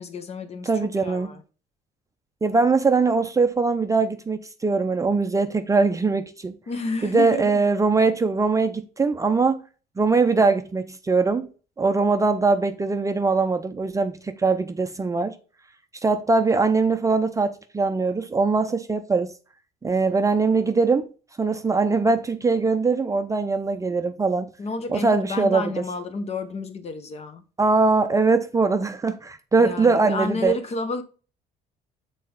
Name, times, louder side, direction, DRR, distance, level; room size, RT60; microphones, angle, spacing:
voice 1, 0.0-1.4 6.7-7.7 24.6-27.4 29.6-31.0, left 2 dB, 40° left, 0.8 m, -30 dB
voice 2, 0.7-1.3 2.4-6.6 7.0-9.6 10.0-11.5 11.8-15.4 16.0-19.3 19.8-21.1 21.4-24.5 24.9-25.7 27.6-30.5, right 4 dB, 20° right, 0.5 m, -21 dB
6.6 x 4.1 x 3.6 m
cardioid pair, 110°, 17 cm